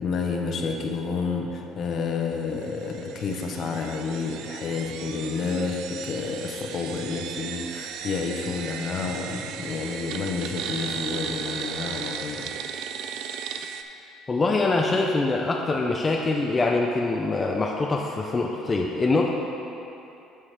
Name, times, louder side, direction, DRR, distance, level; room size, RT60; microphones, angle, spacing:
voice 1, 0.0-12.5, left 4 dB, 50° left, 2 dB, 0.8 m, -30 dB
sound 1, 2.6-13.8, right 8 dB, 75° right, 0.4 m, -36 dB
voice 2, 14.3-19.3, left 3 dB, 20° left, 0 dB, 0.5 m, -24 dB
13.0 x 4.7 x 3.4 m, 2.9 s
cardioid pair, 125°, 0 cm